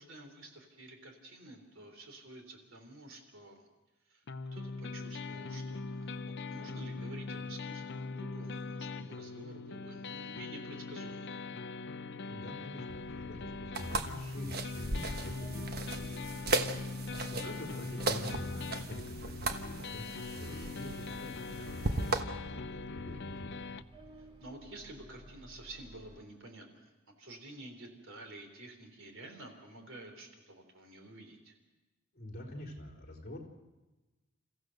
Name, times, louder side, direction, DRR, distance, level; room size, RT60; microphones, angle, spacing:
voice 1, 0.0-3.7 4.1-4.2 4.5-11.3 17.4-17.6 24.2-26.9 27.2-31.5, right 2 dB, 60° right, 4 dB, 3.7 m, -50 dB
sound 1, 4.3-23.8, left 3 dB, 55° left, 0.7 m, -41 dB
voice 2, 12.3-16.4 16.8-23.6 32.1-33.4, left 1 dB, 35° left, -2 dB, 3.9 m, -46 dB
sound 2, 12.9-26.2, equal, 25° right, 2.4 m, -54 dB
sound 3, 13.7-22.2, right 2 dB, 45° right, 1.2 m, -37 dB
29.0 x 15.0 x 6.6 m, 1.1 s
head